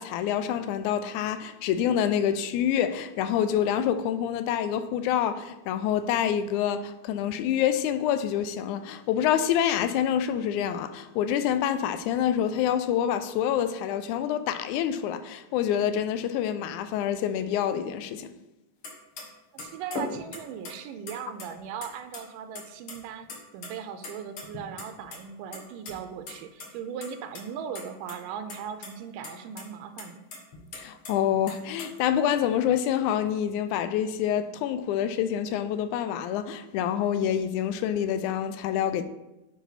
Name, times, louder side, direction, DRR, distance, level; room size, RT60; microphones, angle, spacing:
voice 1, 0.0-18.3 30.7-39.0, left 9 dB, 80° left, 1.9 m, -27 dB
sound 1, 18.8-18.9 19.2-19.3 19.6-20.7 21.1-21.9 22.1-22.2 22.5-23.0 23.2-23.7 24.0-25.2 25.5-25.9 26.3-26.4 26.6-26.7 27.0-27.4 27.7-28.2 28.5-28.9 29.2-29.3 29.6-29.7 30.0-31.1 31.5-31.9, left 3 dB, 55° left, 1.6 m, -38 dB
voice 2, 19.5-30.2, right 7 dB, 85° right, 2.2 m, -38 dB
9.2 x 4.5 x 4.0 m
omnidirectional pair, 3.7 m